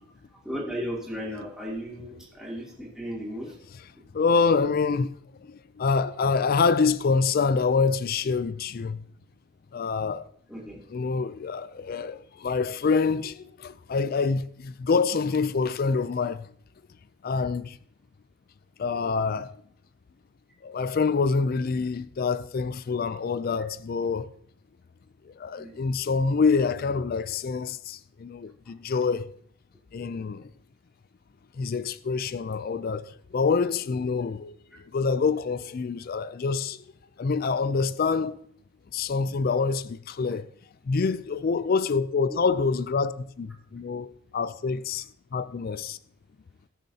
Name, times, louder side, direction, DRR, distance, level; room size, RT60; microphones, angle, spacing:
voice 1, 0.4-3.6 10.5-10.8 25.6-25.8 42.3-42.4, equal, 5° right, 2.8 m, -35 dB
voice 2, 4.1-5.1 5.4-9.0 9.7-10.3 10.9-16.5 17.2-17.8 18.8-19.6 20.6-24.3 25.3-29.3 29.9-30.5 31.6-36.8 37.2-38.4 38.9-40.5 40.9-45.1 45.3-46.0, left 4 dB, 45° left, 0.4 m, -26 dB
19.5 x 7.3 x 2.8 m
head